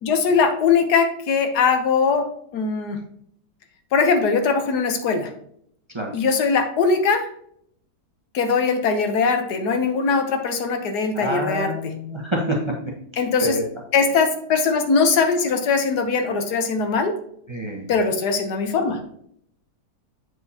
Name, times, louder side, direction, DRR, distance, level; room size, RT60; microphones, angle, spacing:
voice 1, 0.0-3.0 3.9-5.3 6.1-7.3 8.3-11.7 13.2-13.6 13.9-17.1 17.9-19.0, left 5 dB, 75° left, 6 dB, 1.4 m, -21 dB
voice 2, 11.1-12.7 13.4-13.6 17.5-17.9, equal, 20° right, -1 dB, 1.0 m, -26 dB
7.6 x 6.7 x 2.8 m, 0.68 s
omnidirectional pair, 1.8 m